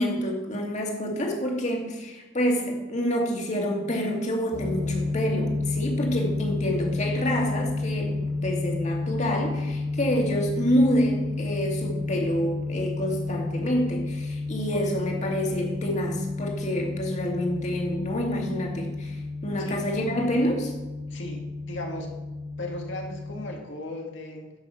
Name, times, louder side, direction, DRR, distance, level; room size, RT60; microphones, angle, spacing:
voice 1, 0.0-20.7, equal, 35° left, 0 dB, 2.1 m, -27 dB
sound 1, 4.5-23.5, left 3 dB, 90° right, 1.9 m, -31 dB
voice 2, 19.6-20.0 21.1-22.1 22.6-24.5, left 1 dB, 75° left, 1 dB, 2.2 m, -37 dB
10.5 x 6.0 x 7.0 m, 1.1 s
head